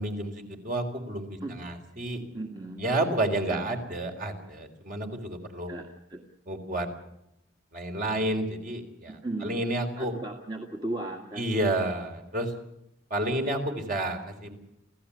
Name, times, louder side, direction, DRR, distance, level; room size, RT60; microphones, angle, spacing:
voice 1, 0.0-2.2 2.8-5.7 6.5-6.9 7.7-10.1 11.4-12.5 13.1-14.6, right 1 dB, 45° right, 4 dB, 3.9 m, -30 dB
voice 2, 2.3-2.8 3.5-3.7 5.7-6.2 9.1-9.6 10.0-11.6, right 2 dB, 25° right, 2 dB, 1.9 m, -36 dB
27.5 x 16.0 x 8.5 m, 0.83 s
head